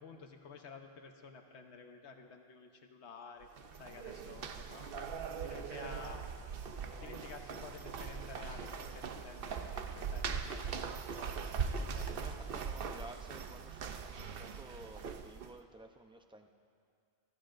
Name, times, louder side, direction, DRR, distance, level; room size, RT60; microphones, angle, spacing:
voice 1, 0.0-3.5 3.8-4.9 5.4-6.2 6.9-12.3, left 5 dB, 85° left, 4 dB, 1.2 m, -52 dB
sound 1, 3.4-15.6, right 6 dB, 60° right, 0.8 m, -41 dB
voice 2, 12.1-16.5, right 1 dB, 5° right, 4 dB, 0.5 m, -53 dB
24.0 x 15.0 x 2.6 m, 2.2 s
omnidirectional pair, 1.1 m